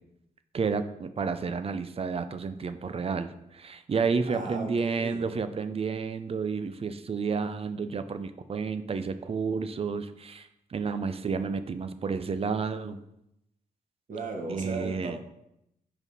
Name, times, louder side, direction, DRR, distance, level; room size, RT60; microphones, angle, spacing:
voice 1, 0.5-13.0 14.5-15.2, right 5 dB, 40° right, 11 dB, 0.5 m, -31 dB
voice 2, 4.3-5.3 14.1-15.2, right 3 dB, 60° right, 1 dB, 1.3 m, -36 dB
5.3 x 4.9 x 4.0 m, 0.82 s
cardioid pair, 75°, 15 cm